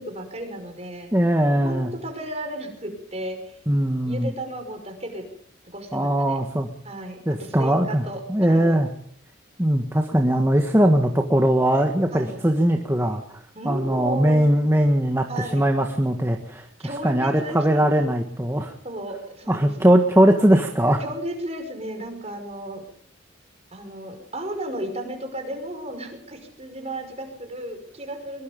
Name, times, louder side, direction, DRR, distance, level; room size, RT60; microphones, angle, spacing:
voice 1, 0.0-1.1 1.5-3.5 4.1-5.2 5.7-6.4 6.8-8.8 12.1-12.4 13.5-14.4 15.3-15.6 16.8-17.9 18.8-20.0 21.0-22.8 23.7-28.4, right 1 dB, 35° right, 5 dB, 5.6 m, -34 dB
voice 2, 1.1-1.9 3.7-4.3 5.9-6.7 7.3-8.0 8.3-8.9 9.6-13.2 13.6-15.3 15.5-18.7 19.5-21.0, right 1 dB, 15° right, 4 dB, 1.6 m, -20 dB
22.5 x 22.5 x 5.3 m, 0.62 s
head